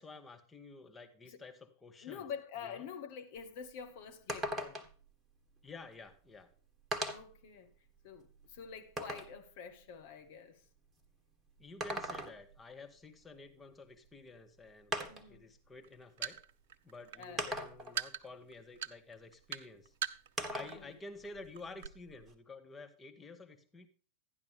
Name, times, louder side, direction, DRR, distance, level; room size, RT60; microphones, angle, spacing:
voice 1, 0.0-2.3 2.6-2.8 5.6-6.5 11.6-16.4 16.8-19.9 20.5-23.9, left 3 dB, 15° left, 1.3 m, -51 dB
voice 2, 2.0-4.9 7.1-7.7 8.0-10.6 15.1-15.4 17.1-17.6 20.5-21.0, left 7 dB, 50° left, 1.2 m, -47 dB
sound 1, 3.4-3.5 3.8-3.9 4.3-5.0 6.1-6.2 6.9-7.4 8.0-9.4 11.6-12.6 14.1-14.2 14.9-15.4 16.4-16.5 17.4-18.0 20.4-20.9 21.2-22.3, right 1 dB, 20° right, 1.4 m, -39 dB
sound 2, 15.8-20.7 21.0-21.3 21.6-21.9, right 9 dB, 55° right, 0.6 m, -40 dB
12.0 x 10.5 x 3.4 m
figure-of-eight pair, 90°, 0 cm